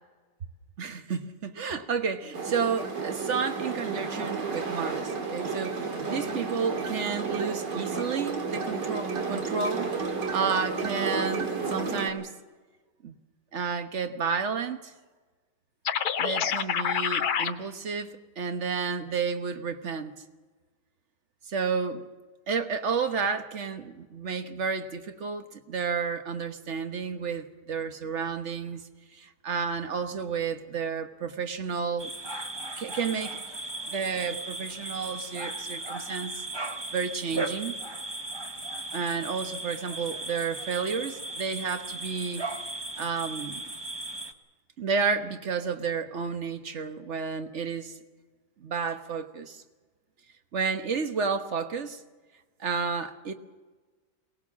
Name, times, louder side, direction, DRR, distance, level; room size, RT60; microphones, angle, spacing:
voice 1, 0.8-9.9 10.3-12.3 13.0-13.1 13.5-14.9 16.2-20.1 21.5-22.0 22.5-28.8 29.1-32.1 32.8-33.4 33.8-36.4 36.9-37.7 38.9-42.4 43.0-43.6 44.8-48.0 48.6-49.6 50.5-52.0 52.6-53.3, right 5 dB, 45° right, 8 dB, 1.4 m, -31 dB
sound 1, 2.3-12.1, right 4 dB, 75° right, 2.8 m, -32 dB
sound 2, 15.8-17.5, left 8 dB, 65° left, 1.4 m, -27 dB
sound 3, 32.0-44.3, right 2 dB, 20° right, 1.0 m, -36 dB
22.5 x 19.0 x 7.3 m, 1.3 s
omnidirectional pair, 1.9 m